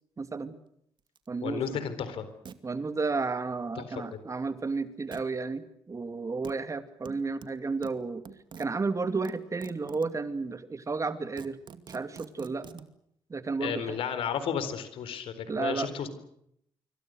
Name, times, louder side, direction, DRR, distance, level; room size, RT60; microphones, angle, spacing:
voice 1, 0.2-0.6 1.3-1.8 2.6-8.2 8.6-11.6 11.9-12.8 13.3-14.0 15.5-15.9, right 4 dB, 35° right, 11 dB, 2.6 m, -32 dB
sound 1, 1.2-1.3 1.7-1.8 2.5-2.6 5.1-5.3 6.4-6.5 7.1-8.7 9.2-10.2 10.8-10.9 11.2-12.9, right 7 dB, 55° right, 2.3 m, -47 dB
voice 2, 1.4-2.3 3.8-4.2 13.6-16.1, left 7 dB, 80° left, 12 dB, 4.1 m, -33 dB
26.0 x 24.5 x 6.5 m, 0.72 s
supercardioid pair, 65°, 9 cm